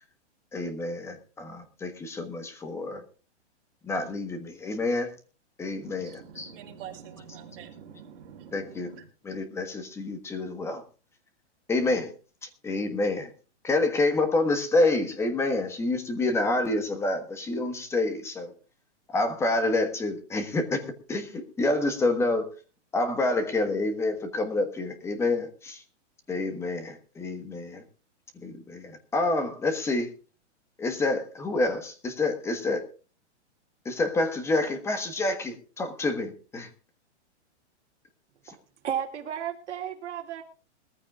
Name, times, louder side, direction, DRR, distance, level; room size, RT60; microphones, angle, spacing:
voice 1, 0.5-3.0 3.8-5.1 5.6-6.5 8.5-8.9 9.2-10.8 11.7-12.1 12.4-13.3 13.6-18.5 19.1-22.5 22.9-25.8 26.3-27.8 28.3-30.1 30.8-32.8 33.8-36.7 38.5-38.6, left 2 dB, 5° left, 8 dB, 1.3 m, -28 dB
voice 2, 5.8-9.0, right 8 dB, 50° right, 1 dB, 4.7 m, -45 dB
voice 3, 38.8-40.4, right 9 dB, 75° right, 3 dB, 2.8 m, -33 dB
21.5 x 14.0 x 2.4 m, 0.36 s
hypercardioid pair, 165°, 35 cm